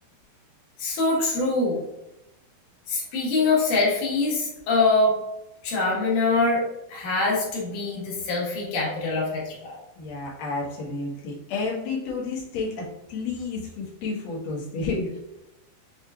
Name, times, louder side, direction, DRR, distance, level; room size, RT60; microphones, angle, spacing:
voice 1, 0.8-1.8 2.9-5.2 5.6-6.6 6.9-9.8, left 3 dB, 65° left, -4 dB, 2.3 m, -24 dB
voice 2, 9.9-15.1, left 3 dB, 80° left, -5 dB, 1.5 m, -31 dB
7.2 x 3.0 x 2.3 m, 0.90 s
omnidirectional pair, 4.6 m